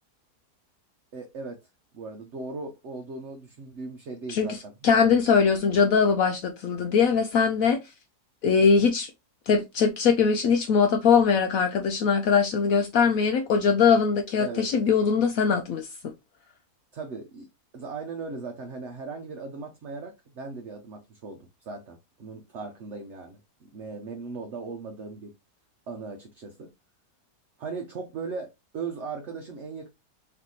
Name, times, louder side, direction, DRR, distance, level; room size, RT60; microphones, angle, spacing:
voice 1, 1.1-1.6 1.9-5.2 14.4-14.7 16.9-25.3 25.9-26.7 27.6-29.9, right 4 dB, 55° right, 0.9 m, -38 dB
voice 2, 4.3-7.8 8.4-9.1 9.5-16.1, left 6 dB, 70° left, 0.9 m, -22 dB
4.0 x 3.2 x 3.0 m
omnidirectional pair, 1.7 m